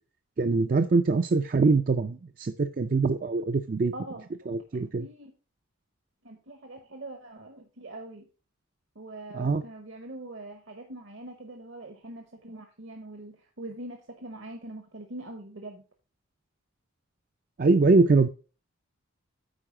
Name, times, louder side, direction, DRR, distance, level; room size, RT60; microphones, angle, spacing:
voice 1, 0.4-3.9 4.5-5.1 9.3-9.6 17.6-18.3, right 3 dB, 40° right, 8 dB, 0.4 m, -23 dB
voice 2, 3.9-4.3 4.7-5.3 6.2-8.3 8.9-15.8, right 1 dB, 65° right, 5 dB, 1.0 m, -43 dB
8.9 x 4.8 x 4.8 m, 0.35 s
head